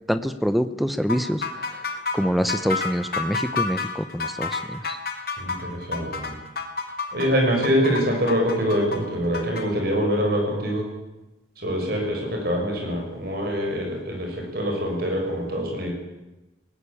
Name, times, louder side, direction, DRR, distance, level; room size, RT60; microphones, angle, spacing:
voice 1, 0.1-1.8 2.1-5.0, equal, ahead, 12 dB, 0.8 m, -26 dB
sound 1, 1.1-9.7, left 4 dB, 50° left, 2.6 m, -30 dB
voice 2, 5.4-6.3 7.1-10.9 11.6-15.9, equal, 55° right, 2 dB, 6.5 m, -24 dB
21.0 x 18.5 x 8.6 m, 1.0 s
head